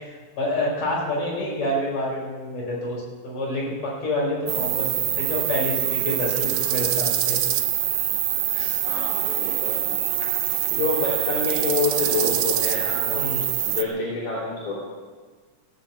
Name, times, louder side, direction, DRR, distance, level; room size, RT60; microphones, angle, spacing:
voice 1, 0.4-3.7 4.0-7.4 8.5-8.8 13.1-13.4, left 1 dB, 50° left, -4 dB, 6.5 m, -28 dB
sound 1, 4.5-13.8, right 12 dB, 70° right, 1.9 m, -24 dB
voice 2, 8.8-10.0 10.7-13.3 13.6-14.7, left 3 dB, 70° left, -7 dB, 4.9 m, -27 dB
16.0 x 10.0 x 8.3 m, 1.4 s
omnidirectional pair, 3.9 m